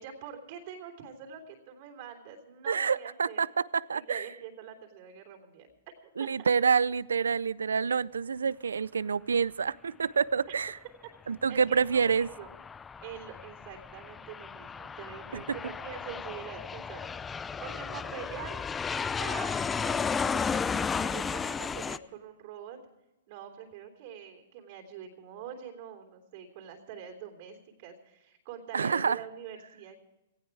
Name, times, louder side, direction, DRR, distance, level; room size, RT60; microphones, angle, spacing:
voice 1, 0.0-3.4 4.1-5.9 6.2-6.5 11.5-12.5 13.0-18.6 19.1-22.8 23.3-30.0, right 8 dB, 50° right, 2 dB, 3.3 m, -45 dB
voice 2, 2.7-4.2 6.2-10.8 11.3-12.3 15.3-15.4 28.7-29.2, right 6 dB, 90° right, 22 dB, 0.4 m, -27 dB
Aircraft, 11.8-22.0, left 5 dB, 15° left, 0.4 m, -34 dB
18.0 x 15.0 x 4.8 m, 0.95 s
hypercardioid pair, 130°, 0 cm